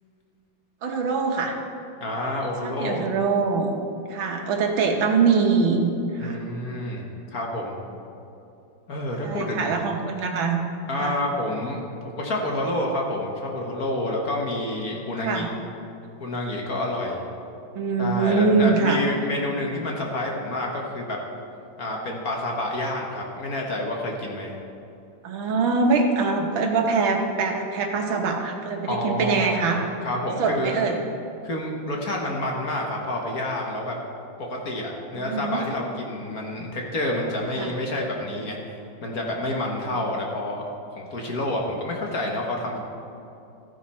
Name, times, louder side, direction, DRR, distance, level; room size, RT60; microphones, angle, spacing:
voice 1, 0.8-1.6 2.6-3.7 4.1-6.4 9.2-10.6 11.0-11.1 15.2-15.5 17.8-19.0 25.2-29.8 30.4-31.0 35.2-35.6 37.5-37.7 39.9-40.0, right 4 dB, 70° right, 3 dB, 1.8 m, -23 dB
voice 2, 2.0-3.0 6.2-7.8 8.9-9.7 10.9-11.8 12.1-15.4 16.2-17.3 18.0-21.2 21.8-24.5 28.9-29.5 30.0-30.8 31.4-33.9 34.4-40.6 40.9-42.8, left 1 dB, 50° left, 0 dB, 1.6 m, -28 dB
14.5 x 9.9 x 4.3 m, 2.8 s
omnidirectional pair, 2.3 m